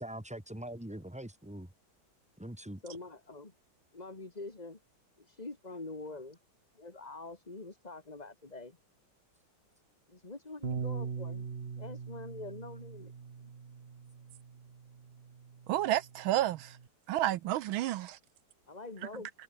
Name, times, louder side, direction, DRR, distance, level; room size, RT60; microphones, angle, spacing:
voice 1, 0.0-1.7 2.4-2.8, right 1 dB, 5° right, 2.0 m, -43 dB
voice 2, 2.8-3.5 3.9-4.8 5.2-6.4 6.7-8.8 10.1-11.5 11.8-13.1 13.4-13.5 18.7-19.3, left 3 dB, 20° left, 2.3 m, -45 dB
Bass guitar, 10.6-16.9, right 6 dB, 35° right, 1.2 m, -42 dB
voice 3, 15.7-16.8 17.1-18.2, right 14 dB, 75° right, 1.4 m, -30 dB
omnidirectional pair, 2.3 m